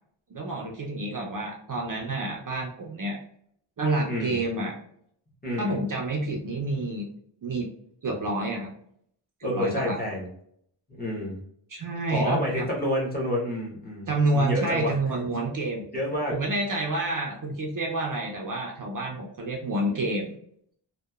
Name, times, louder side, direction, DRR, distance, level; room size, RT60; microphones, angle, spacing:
voice 1, 0.3-3.2 3.8-4.7 5.6-7.1 7.4-7.7 8.0-8.7 9.4-10.0 11.7-12.7 14.1-15.8 16.3-20.3, right 2 dB, 45° right, -1 dB, 0.4 m, -28 dB
voice 2, 4.1-4.4 5.4-5.8 9.4-10.3 11.0-11.4 12.1-15.0 15.9-16.3, left 1 dB, 20° left, -4 dB, 0.8 m, -29 dB
2.8 x 2.1 x 2.2 m, 0.68 s
wide cardioid pair, 120°, 48 cm